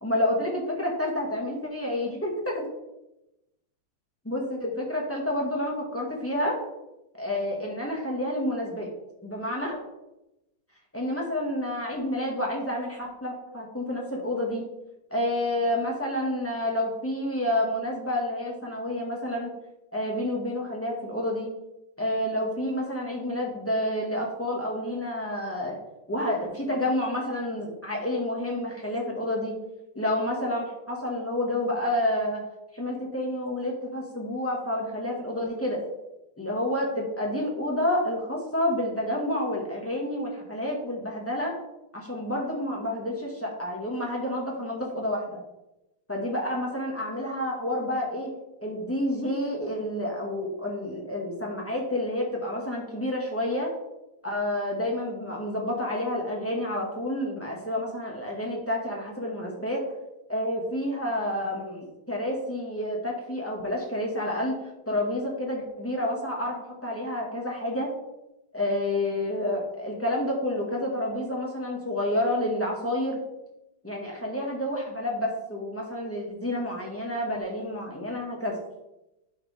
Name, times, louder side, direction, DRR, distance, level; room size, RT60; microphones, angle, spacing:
voice 1, 0.0-2.6 4.2-6.6 7.2-8.9 9.2-9.8 10.9-14.6 15.1-19.5 19.9-21.5 22.0-25.8 26.1-29.6 29.9-32.4 32.7-35.8 36.4-41.5 41.9-45.4 46.1-48.3 48.6-53.7 54.2-59.8 60.3-64.5 64.9-67.9 68.5-73.2 73.8-78.6, left 1 dB, 5° left, -3 dB, 1.6 m, -29 dB
10.5 x 5.7 x 3.6 m, 0.92 s
omnidirectional pair, 2.4 m